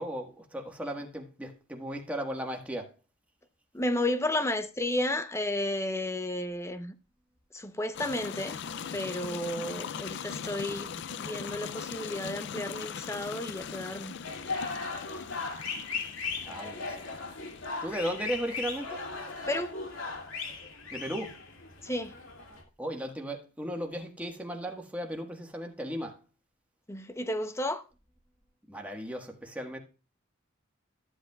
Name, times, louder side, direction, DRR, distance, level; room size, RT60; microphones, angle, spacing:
voice 1, 0.0-2.9 16.5-17.1 17.8-19.0 20.9-21.4 22.8-26.2 28.7-29.8, equal, 5° right, 1.4 m, -36 dB
voice 2, 3.7-7.0 7.5-8.6 8.9-14.1 19.5-19.7 21.8-22.1 26.9-27.8, left 1 dB, 15° left, 0.7 m, -32 dB
sound 1, 7.9-19.7, left 7 dB, 60° left, 0.4 m, -41 dB
sound 2, 14.2-22.6, left 4 dB, 75° left, 2.5 m, -37 dB
14.0 x 8.1 x 2.3 m
head